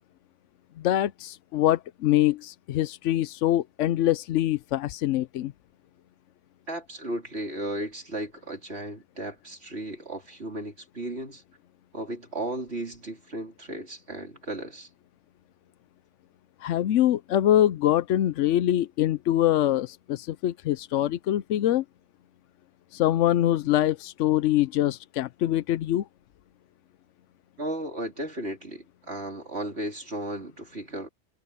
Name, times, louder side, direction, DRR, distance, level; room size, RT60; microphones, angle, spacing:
voice 1, 0.8-5.5 16.6-21.8 22.9-26.0, left 13 dB, 80° left, 0.9 m, -24 dB
voice 2, 6.7-11.4 11.9-14.9 27.6-31.1, right 1 dB, 60° right, 4.1 m, -35 dB
omnidirectional pair, 1.2 m